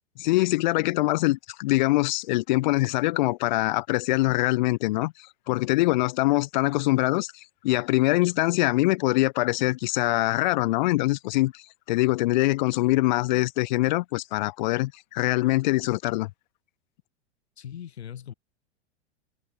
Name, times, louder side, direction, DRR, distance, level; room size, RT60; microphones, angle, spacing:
voice 1, 0.2-5.1 5.5-7.3 7.6-11.6 11.9-16.3, left 19 dB, 40° left, 0.5 m, -23 dB
voice 2, 17.6-18.3, left 9 dB, 65° left, 7.2 m, -39 dB
figure-of-eight pair, 95°, 35 cm